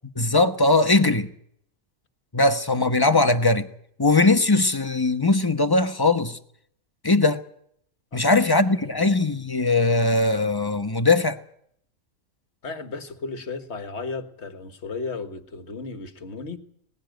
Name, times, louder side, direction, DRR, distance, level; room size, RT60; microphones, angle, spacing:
voice 1, 0.2-1.3 2.3-3.7 4.0-6.4 7.0-7.4 8.1-11.4, left 2 dB, 20° left, 1.0 m, -20 dB
voice 2, 12.6-16.6, left 4 dB, 50° left, 1.8 m, -34 dB
19.5 x 15.5 x 9.2 m
omnidirectional pair, 1.5 m